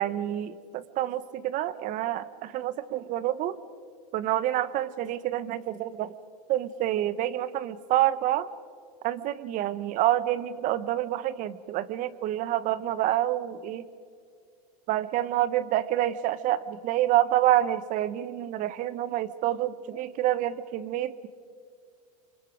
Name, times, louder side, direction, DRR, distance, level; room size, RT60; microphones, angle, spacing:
voice 1, 0.0-3.6 4.1-6.1 6.5-8.5 9.0-13.8 14.9-21.3, right 13 dB, 40° right, 16 dB, 1.0 m, -27 dB
28.5 x 25.5 x 5.2 m, 2.2 s
supercardioid pair, 125°, 20 cm